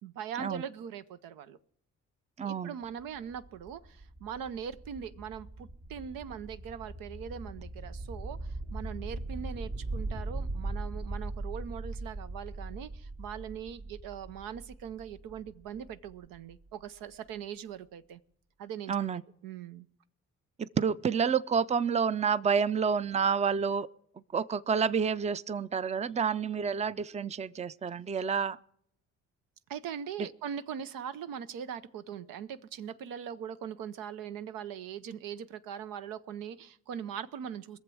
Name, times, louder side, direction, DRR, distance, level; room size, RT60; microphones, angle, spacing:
voice 1, 0.0-1.6 2.4-18.2 18.6-19.9 29.7-37.8, right 8 dB, 80° right, 0.7 m, -41 dB
voice 2, 2.4-2.7 18.9-19.2 20.6-23.9 24.3-28.6, right 6 dB, 20° right, 0.5 m, -29 dB
sound 1, 2.8-16.6, right 2 dB, 60° right, 3.0 m, -40 dB
21.0 x 7.2 x 6.2 m
supercardioid pair, 55°, 33 cm